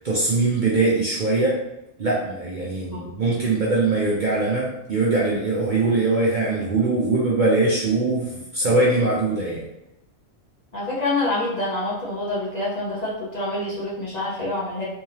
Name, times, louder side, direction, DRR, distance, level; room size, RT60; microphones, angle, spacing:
voice 1, 0.0-1.6 2.0-9.6, right 3 dB, 50° right, -5 dB, 0.7 m, -22 dB
voice 2, 10.7-14.8, left 2 dB, 35° left, -7 dB, 1.0 m, -26 dB
3.5 x 3.2 x 2.8 m, 0.89 s
omnidirectional pair, 1.3 m